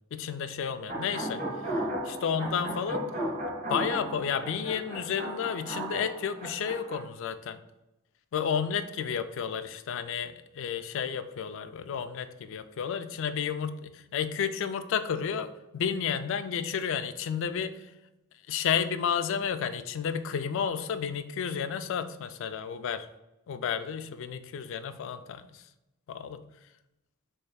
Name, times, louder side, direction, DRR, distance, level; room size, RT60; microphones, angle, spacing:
voice 1, 0.1-1.4 2.0-3.1 3.7-7.6 8.3-15.5 15.7-17.9 18.5-23.1 23.5-25.6 26.1-26.4, left 7 dB, 65° left, 10 dB, 0.3 m, -31 dB
sound 1, 0.9-7.0, right 1 dB, 40° right, 1.1 m, -35 dB
4.9 x 3.2 x 2.3 m, 0.95 s
head